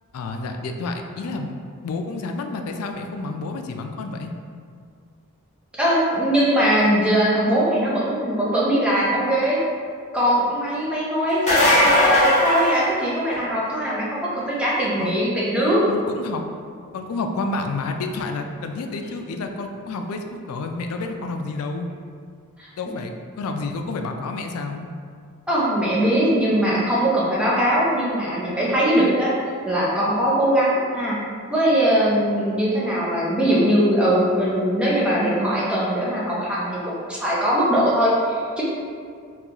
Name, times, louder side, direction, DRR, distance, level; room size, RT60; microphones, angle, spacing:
voice 1, 0.1-1.5 1.8-4.3 15.0-15.2 15.9-16.4 16.9-21.9 22.8-24.9, left 3 dB, 80° left, 5 dB, 0.3 m, -29 dB
voice 2, 5.8-9.6 10.1-15.8 22.6-22.7 25.5-29.3 29.6-31.2 31.5-38.6, equal, 5° right, -8 dB, 0.6 m, -21 dB
sound 1, 11.3-13.5 19.0-19.1 21.0-21.1, left 1 dB, 30° left, 0.8 m, -18 dB
3.7 x 2.3 x 2.8 m, 2.1 s
head